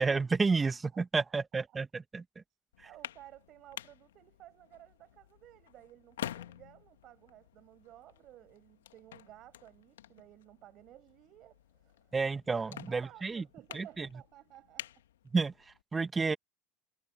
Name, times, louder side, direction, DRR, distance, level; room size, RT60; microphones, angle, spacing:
voice 1, 0.0-2.4 2.8-2.9 12.1-13.4 13.7-14.1 15.3-16.4, right 4 dB, 20° right, 1.6 m, -31 dB
sound 1, 2.7-15.8, left 12 dB, 80° left, 1.6 m, -49 dB
voice 2, 2.8-12.1 12.5-15.0, right 14 dB, 50° right, 6.0 m, -55 dB
hypercardioid pair, 80°, 0 cm